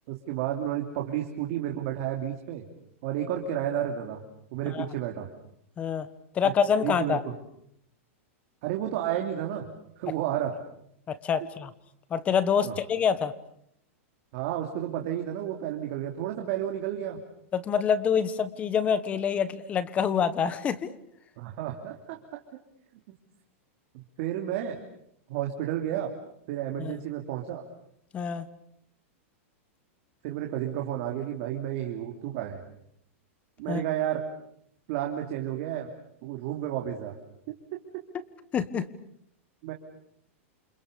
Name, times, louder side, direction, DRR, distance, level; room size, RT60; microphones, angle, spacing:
voice 1, 0.1-2.7 3.0-4.2 4.5-5.3 6.4-6.5 6.8-7.3 8.6-9.7 10.0-10.5 12.6-12.7 14.3-17.2 21.4-22.4 23.9-24.8 25.3-26.1 26.5-27.6 30.2-32.6 33.6-34.2 34.9-35.9 36.2-37.2 37.7-37.8 39.6-39.7, right 11 dB, 45° right, 2 dB, 3.2 m, -31 dB
voice 2, 5.8-6.1 6.3-7.2 11.1-11.7 12.1-13.3 17.5-20.9 26.8-27.0 28.1-28.5 33.7-33.8 38.5-38.9, left 7 dB, 15° left, 13 dB, 1.4 m, -26 dB
29.0 x 28.5 x 7.0 m, 0.73 s
supercardioid pair, 165°, 7 cm